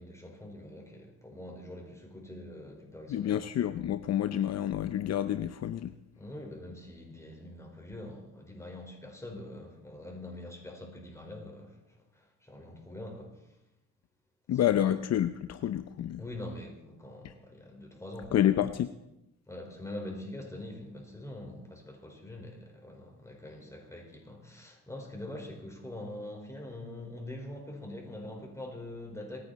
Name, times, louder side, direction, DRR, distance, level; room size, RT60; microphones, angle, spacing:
voice 1, 0.0-3.5 6.1-13.6 14.5-14.8 16.2-18.4 19.5-29.4, left 1 dB, 10° left, 1 dB, 4.8 m, -44 dB
voice 2, 3.1-5.9 14.5-16.2 18.3-18.9, left 11 dB, 60° left, 11 dB, 0.7 m, -28 dB
26.5 x 9.9 x 4.2 m, 0.92 s
cardioid pair, 90°, 30 cm